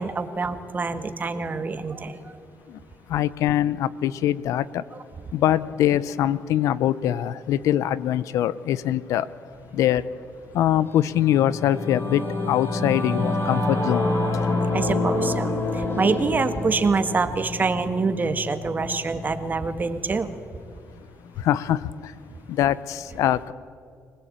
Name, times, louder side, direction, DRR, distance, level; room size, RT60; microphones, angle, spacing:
voice 1, 0.0-2.2 14.7-20.3, right 4 dB, 35° right, 1.8 m, -25 dB
voice 2, 3.1-4.8 5.3-9.2 9.7-10.0 10.5-14.0 21.5-21.8 22.6-23.5, left 12 dB, 80° left, 0.7 m, -23 dB
Singing / Musical instrument, 10.9-20.6, left 2 dB, 45° left, 4.5 m, -28 dB
25.0 x 19.0 x 8.9 m
cardioid pair, 80°, 5 cm